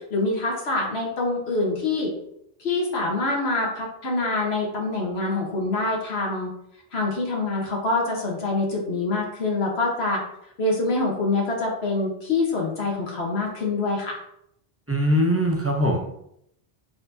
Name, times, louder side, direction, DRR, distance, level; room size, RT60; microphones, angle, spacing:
voice 1, 0.1-2.1 2.6-6.5 6.9-10.2 10.6-14.2, left 2 dB, 80° left, -2 dB, 1.4 m, -25 dB
voice 2, 14.9-16.0, equal, 20° right, 0 dB, 0.5 m, -21 dB
4.2 x 4.2 x 2.6 m, 0.75 s
omnidirectional pair, 1.1 m